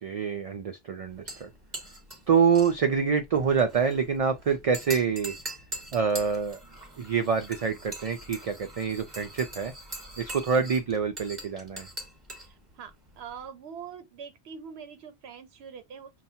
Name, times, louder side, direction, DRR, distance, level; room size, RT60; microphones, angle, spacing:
voice 1, 0.0-1.5 2.3-5.3 5.9-6.6 7.0-9.7 10.2-11.9, right 6 dB, 55° right, 0.4 m, -26 dB
sound 1, 1.1-13.5, right 1 dB, 25° right, 1.2 m, -43 dB
voice 2, 12.4-16.1, right 7 dB, 80° right, 0.8 m, -44 dB
5.5 x 2.3 x 2.6 m
omnidirectional pair, 1.1 m